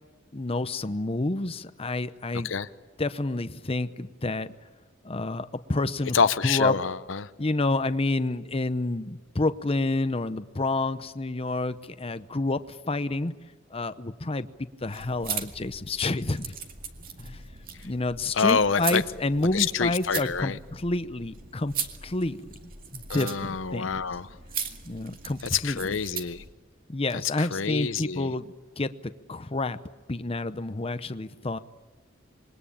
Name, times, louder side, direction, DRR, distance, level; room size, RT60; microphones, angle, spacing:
voice 1, 0.3-2.5 3.0-4.5 5.0-6.8 7.4-13.3 13.7-16.6 17.2-17.5 17.8-21.8 22.0-22.5 22.9-24.0 24.9-26.0 26.9-29.8 30.1-31.6, left 2 dB, 30° left, 12 dB, 0.8 m, -29 dB
voice 2, 6.1-7.3 18.4-19.0 19.5-20.6 23.1-24.3 25.5-26.4 27.4-28.3, left 6 dB, 80° left, 13 dB, 0.8 m, -26 dB
sound 1, 14.8-26.5, right 7 dB, 50° right, 2.3 m, -39 dB
27.0 x 22.0 x 8.7 m, 1.3 s
head